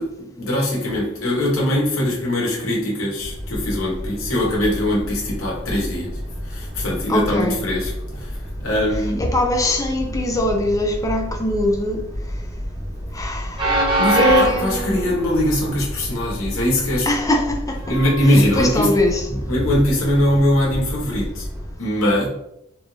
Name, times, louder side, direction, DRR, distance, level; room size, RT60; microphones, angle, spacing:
voice 1, 0.0-9.3 14.0-17.1 17.9-18.9 19.3-21.5 21.8-22.3, left 1 dB, 85° left, 1.3 m, -21 dB
Train, 3.2-21.7, right 1 dB, 25° right, 1.1 m, -28 dB
voice 2, 7.1-7.6 9.2-12.0 13.1-13.8 14.2-15.1 17.1-17.8 18.6-19.2, left 1 dB, 15° left, 0.5 m, -21 dB
3.6 x 2.5 x 3.2 m
head